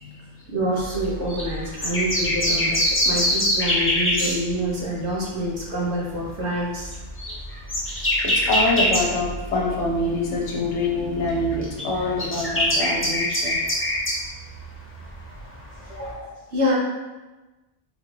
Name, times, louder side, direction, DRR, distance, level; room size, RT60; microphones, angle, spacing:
voice 1, 0.5-7.0 15.9-16.7, equal, 70° right, -4 dB, 1.1 m, -27 dB
sound 1, 0.7-5.1 5.4-5.6 6.1-10.4 10.7-16.1, left 1 dB, 15° left, 0.5 m, -25 dB
voice 2, 8.2-13.6, left 2 dB, 75° left, -1 dB, 1.0 m, -25 dB
3.7 x 2.4 x 3.1 m, 1.2 s
omnidirectional pair, 1.2 m